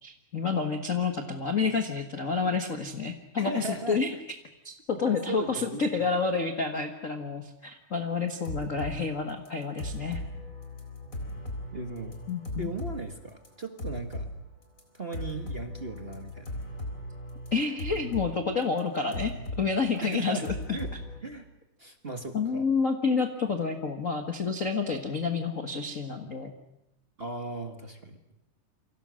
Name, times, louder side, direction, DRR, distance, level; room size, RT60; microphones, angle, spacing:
voice 1, 0.0-4.1 4.6-10.2 12.3-12.7 17.5-20.8 22.3-26.5, left 4 dB, 40° left, 5 dB, 1.2 m, -29 dB
voice 2, 3.4-4.0 5.0-5.8 11.7-12.2 12.6-14.3 14.9-16.5 20.0-20.9 21.2-21.5 21.8-22.7 27.2-28.2, right 2 dB, 30° right, 5 dB, 1.1 m, -37 dB
sound 1, 8.3-9.0 9.4-13.0 13.3-14.3 14.8-14.9 15.1-18.3 18.6-19.7 20.0-21.2, left 1 dB, 25° left, 4.1 m, -37 dB
29.0 x 25.0 x 6.4 m, 0.85 s
omnidirectional pair, 3.7 m